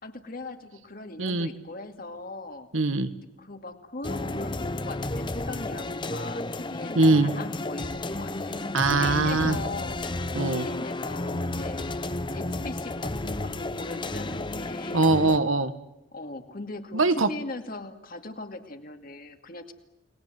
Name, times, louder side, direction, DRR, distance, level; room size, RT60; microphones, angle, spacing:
voice 1, 0.0-2.7 3.4-10.0 10.4-11.9 12.3-15.1 16.1-19.7, left 2 dB, 45° left, 6 dB, 2.4 m, -39 dB
voice 2, 1.2-1.5 2.7-3.1 6.9-7.3 8.7-9.6 10.3-10.7 14.9-15.7 16.9-17.3, right 2 dB, 85° right, 10 dB, 1.8 m, -22 dB
sound 1, 4.0-15.4, left 2 dB, 25° left, 0.9 m, -32 dB
30.0 x 20.5 x 7.8 m, 0.86 s
head